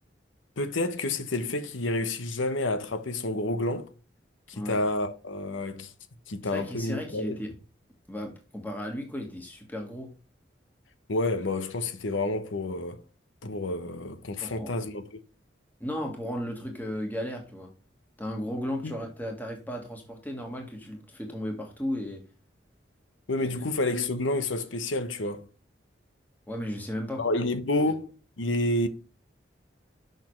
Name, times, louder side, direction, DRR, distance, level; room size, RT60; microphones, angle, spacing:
voice 1, 0.6-3.9 4.5-5.9 6.3-7.4 11.1-13.0 13.4-15.2 18.8-19.0 23.3-25.5 27.2-28.9, left 2 dB, 85° left, 1.0 m, -29 dB
voice 2, 6.4-7.5 8.1-10.1 14.4-14.7 15.8-17.7 18.2-22.2 23.4-23.5 26.5-27.2, equal, 10° left, 1.5 m, -35 dB
6.6 x 6.1 x 3.2 m
head